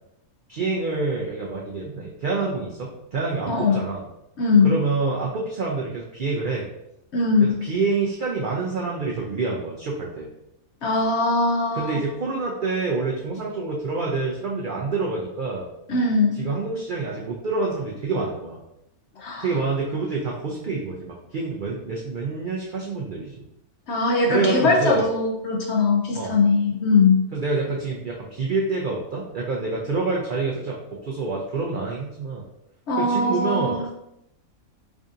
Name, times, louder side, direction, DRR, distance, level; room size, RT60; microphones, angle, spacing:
voice 1, 0.5-4.0 4.6-6.7 7.4-10.3 11.7-15.7 16.4-18.6 19.4-23.4 24.3-25.0 26.1-26.3 27.3-30.8 31.0-32.4 33.0-33.9, right 3 dB, 80° right, -3 dB, 0.4 m, -27 dB
voice 2, 3.5-3.9 4.4-4.8 7.1-7.6 10.8-12.0 15.9-16.4 19.2-19.5 23.9-27.2 32.9-33.9, left 3 dB, 65° left, 0 dB, 0.7 m, -20 dB
4.7 x 2.6 x 2.4 m, 0.84 s
omnidirectional pair, 1.5 m